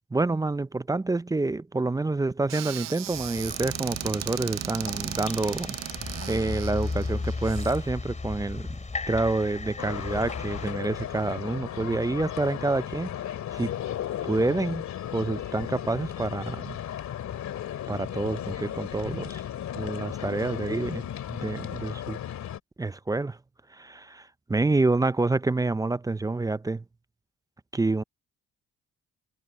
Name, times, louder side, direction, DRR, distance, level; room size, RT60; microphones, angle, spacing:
voice 1, 0.1-5.8 6.3-8.8 9.1-13.2 13.5-13.7 14.2-14.8 15.1-16.8 17.9-19.4 19.7-21.0 21.3-22.2 22.8-23.4 23.7-26.8 27.7-28.0, right 2 dB, 10° right, 0.5 m, -28 dB
Squeak / Cupboard open or close, 2.5-7.8, right 14 dB, 60° right, 0.5 m, -36 dB
sound 1, 3.1-10.7, left 3 dB, 25° left, 3.7 m, -35 dB
sound 2, 9.8-22.6, left 10 dB, 70° left, 2.3 m, -35 dB
cardioid pair, 90°, 30 cm